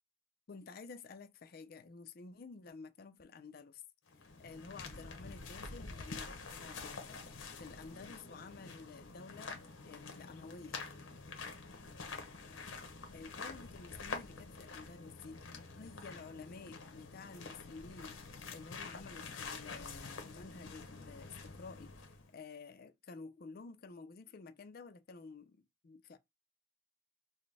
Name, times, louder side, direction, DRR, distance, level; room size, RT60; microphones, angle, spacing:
voice 1, 0.5-3.8 4.4-10.8 13.1-15.4 15.7-18.2 18.5-21.9 22.3-26.2, left 4 dB, 50° left, 0.4 m, -51 dB
sound 1, 4.1-22.3, left 4 dB, 90° left, 0.9 m, -47 dB
4.0 x 2.1 x 3.3 m
head